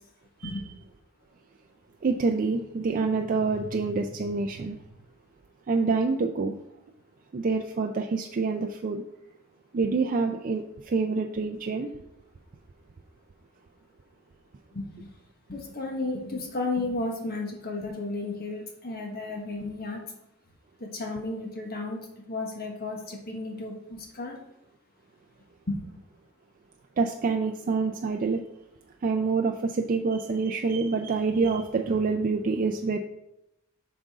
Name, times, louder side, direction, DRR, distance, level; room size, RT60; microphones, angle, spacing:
voice 1, 2.0-4.8 5.7-6.6 7.3-9.0 9.7-11.9 27.0-28.5 29.0-33.0, right 4 dB, 40° right, 4 dB, 0.4 m, -27 dB
voice 2, 14.7-15.1 15.5-20.0 20.8-22.0 22.3-24.4 25.7-25.8, left 2 dB, 45° left, 1 dB, 1.4 m, -33 dB
7.7 x 5.1 x 3.6 m, 0.85 s
head